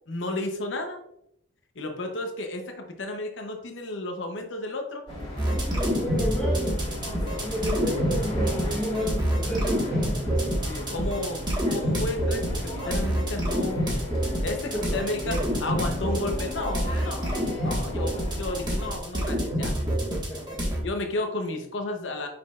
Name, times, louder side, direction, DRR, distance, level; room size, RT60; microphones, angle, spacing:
voice 1, 0.1-1.0 1.8-5.0 7.3-7.4 10.7-11.4 11.7-14.0 14.4-17.4 17.6-19.7 20.8-22.3, left 2 dB, 70° left, 4 dB, 0.8 m, -32 dB
sound 1, 5.1-19.0, left 1 dB, 30° left, 2.1 m, -35 dB
voice 2, 5.4-10.2 14.4-15.5 19.9-20.8, equal, 5° left, -7 dB, 1.1 m, -33 dB
sound 2, 5.4-20.8, equal, 25° right, 1.5 m, -27 dB
6.3 x 6.1 x 2.4 m, 0.76 s
head